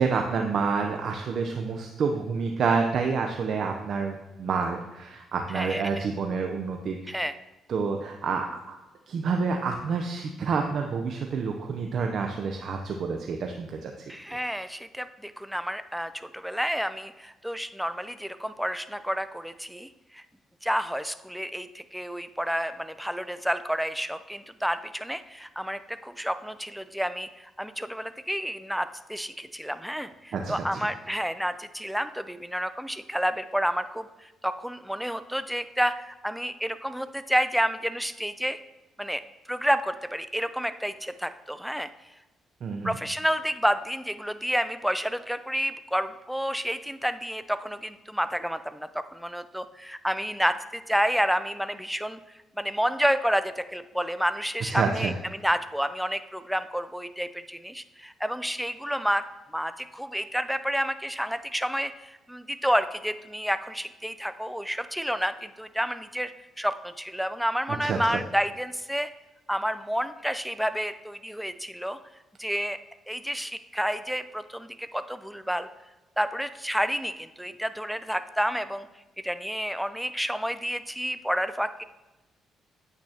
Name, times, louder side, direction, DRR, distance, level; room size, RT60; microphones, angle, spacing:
voice 1, 0.0-7.2 7.7-8.8 9.1-13.9 30.3-30.5 42.6-42.9 54.7-55.1 67.8-68.0, right 5 dB, 60° right, 3 dB, 0.7 m, -28 dB
voice 2, 5.5-6.1 7.1-7.3 14.1-20.2 20.6-38.6 39.0-39.2 39.5-41.9 42.8-52.2 52.6-59.2 59.5-66.3 66.6-69.1 69.5-72.0 72.4-72.8 73.1-75.7 76.2-78.9 79.2-81.8, equal, ahead, 11 dB, 0.5 m, -30 dB
9.0 x 8.4 x 2.9 m, 1.1 s
cardioid pair, 90°, 0 cm